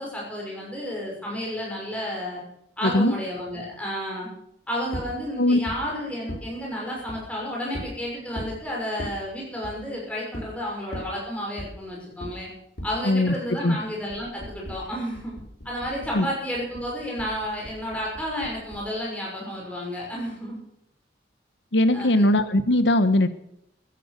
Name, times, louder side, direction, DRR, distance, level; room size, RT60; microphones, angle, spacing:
voice 1, 0.0-2.4 2.8-4.3 4.7-12.5 12.8-15.3 15.6-20.6 21.9-22.2, equal, 10° left, -3 dB, 6.0 m, -31 dB
voice 2, 2.8-3.2 5.4-5.6 13.0-13.3 13.6-13.8 16.1-16.3 21.7-23.3, left 1 dB, 80° left, 12 dB, 1.2 m, -20 dB
sound 1, 4.9-5.1 5.7-5.8 6.3-6.5 7.1-7.2 7.7-7.9 8.3-8.6 9.0-9.2 9.6-9.8 10.3-10.5 10.9-11.1 11.6-11.7 12.2-12.3 12.8-12.9 14.1-16.2 16.5-18.9, equal, 60° left, 4.1 m, -37 dB
15.0 x 12.0 x 6.6 m, 0.75 s
head